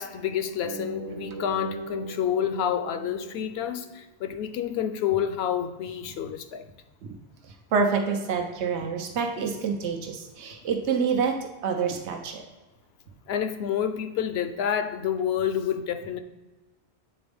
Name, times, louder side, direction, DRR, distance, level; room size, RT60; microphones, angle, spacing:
voice 1, 0.0-6.6 13.3-16.2, left 9 dB, 70° left, 9 dB, 0.8 m, -28 dB
sound 1, 0.6-4.2, right 2 dB, 50° right, 0.4 m, -39 dB
voice 2, 7.4-12.4, right 5 dB, 85° right, 3 dB, 1.0 m, -27 dB
7.7 x 4.0 x 3.5 m, 1.2 s
omnidirectional pair, 1.1 m